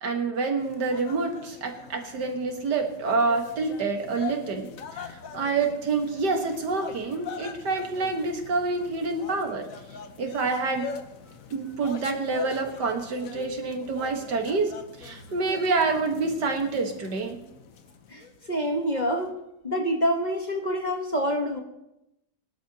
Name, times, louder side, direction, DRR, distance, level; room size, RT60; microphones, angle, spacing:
voice 1, 0.0-9.7 10.2-10.9 11.5-17.4, right 3 dB, 80° right, 3 dB, 2.1 m, -27 dB
sound 1, 0.6-19.3, left 6 dB, 60° left, 1.3 m, -43 dB
voice 2, 18.5-19.3 19.6-21.6, equal, 30° left, 2 dB, 1.2 m, -26 dB
23.0 x 12.0 x 2.9 m, 0.87 s
omnidirectional pair, 1.8 m